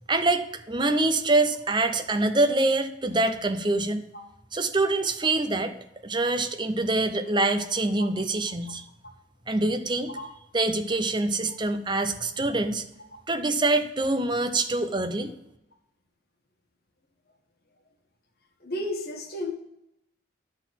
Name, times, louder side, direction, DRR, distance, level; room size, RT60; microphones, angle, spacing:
voice 1, 0.1-4.0 4.5-5.7 6.0-8.8 9.5-10.2 10.5-12.8 13.3-15.3, right 2 dB, 25° right, 8 dB, 0.6 m, -25 dB
voice 2, 18.6-19.5, left 1 dB, 50° left, 2 dB, 1.5 m, -32 dB
11.0 x 4.1 x 5.9 m, 0.85 s
head